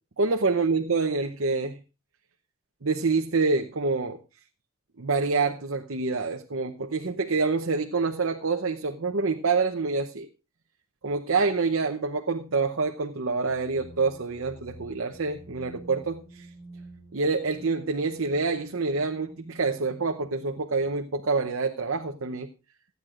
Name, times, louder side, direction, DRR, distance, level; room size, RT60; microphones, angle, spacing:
voice 1, 0.2-1.8 2.8-4.2 5.0-10.3 11.0-16.5 17.1-22.5, right 4 dB, 60° right, 5 dB, 0.8 m, -27 dB
sound 1, 13.4-21.1, right 1 dB, 30° left, 6.0 m, -50 dB
28.0 x 9.4 x 2.5 m, 0.30 s
head